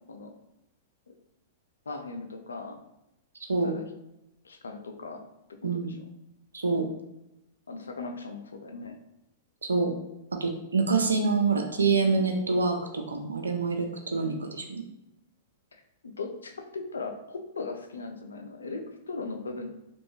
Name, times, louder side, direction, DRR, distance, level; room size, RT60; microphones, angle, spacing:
voice 1, 1.9-2.8 3.6-3.8 4.4-5.2 5.6-6.1 7.7-9.0 16.0-19.7, left 3 dB, 85° left, 5 dB, 0.5 m, -38 dB
voice 2, 6.5-6.9 9.6-9.9 10.3-14.8, right 4 dB, 90° right, 4 dB, 0.5 m, -26 dB
3.0 x 2.6 x 3.1 m, 0.88 s
hypercardioid pair, 110°, 0 cm